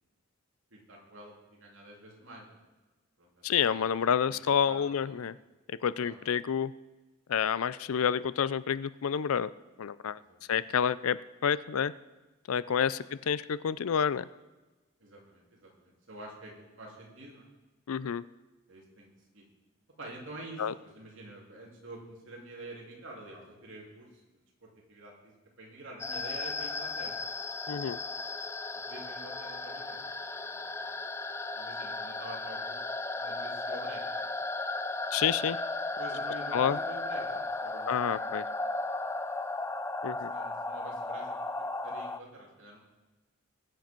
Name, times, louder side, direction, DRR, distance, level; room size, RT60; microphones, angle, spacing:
voice 1, 0.7-2.6 3.2-3.6 4.2-4.4 4.7-5.1 6.0-6.1 10.1-10.6 12.7-13.1 15.0-17.5 18.7-19.1 19.3-19.4 20.0-24.1 24.6-27.2 28.9-30.9 31.5-32.8 33.2-34.1 36.0-38.2 40.2-42.8, right 1 dB, 65° right, -2 dB, 3.1 m, -48 dB
voice 2, 3.4-5.4 5.7-6.7 7.3-9.5 9.8-10.2 10.5-11.9 12.5-14.2 17.9-18.2 20.6-20.7 27.7-28.0 35.1-35.6 36.5-36.8 37.9-38.4 40.0-40.3, left 7 dB, 85° left, 17 dB, 0.4 m, -29 dB
sound 1, 26.0-42.2, left 2 dB, 10° left, 0.3 m, -35 dB
21.0 x 7.5 x 4.5 m, 1.2 s
head